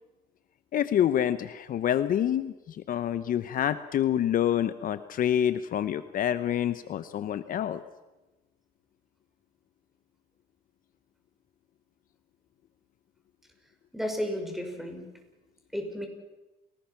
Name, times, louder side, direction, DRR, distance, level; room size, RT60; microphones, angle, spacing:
voice 1, 0.7-7.8, left 10 dB, 55° left, 12 dB, 0.9 m, -27 dB
voice 2, 13.9-15.1 15.7-16.1, equal, ahead, 3 dB, 5.7 m, -33 dB
29.0 x 19.5 x 5.9 m, 1.1 s
cardioid pair, 110°, 17 cm